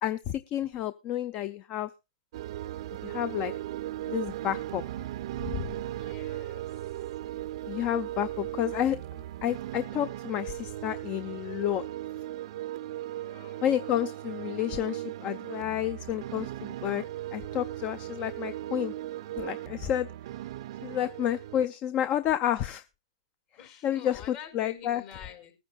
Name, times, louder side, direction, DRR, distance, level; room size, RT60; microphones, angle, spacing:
voice 1, 0.0-1.9 3.0-3.5 4.1-4.8 5.4-5.7 7.7-11.9 13.6-17.0 17.3-18.9 19.4-20.1 20.8-22.8 23.8-25.0, left 11 dB, 35° left, 14 dB, 0.6 m, -30 dB
sound 1, 2.3-21.7, right 14 dB, 60° right, 0.5 m, -37 dB
voice 2, 5.9-7.0 13.1-13.6 23.6-25.5, left 9 dB, 55° left, 4 dB, 5.0 m, -48 dB
20.5 x 9.6 x 2.3 m, 0.26 s
hypercardioid pair, 125°, 3 cm